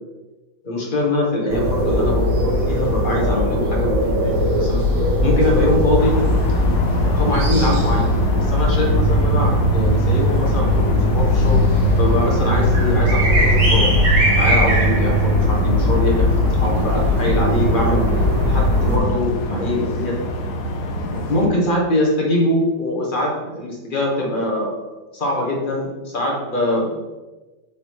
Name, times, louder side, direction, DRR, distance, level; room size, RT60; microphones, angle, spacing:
voice 1, 0.6-4.8 5.2-6.2 7.0-8.1 8.4-11.6 12.0-13.9 14.4-16.3 16.6-18.0 18.4-20.1 21.1-24.9 25.1-26.9, left 1 dB, 30° left, -2 dB, 1.2 m, -23 dB
sound 1, 1.5-19.0, left 1 dB, 45° right, 1.5 m, -18 dB
sound 2, 6.0-21.5, equal, 65° left, 1.1 m, -27 dB
6.4 x 4.1 x 4.6 m, 1.2 s
omnidirectional pair, 2.4 m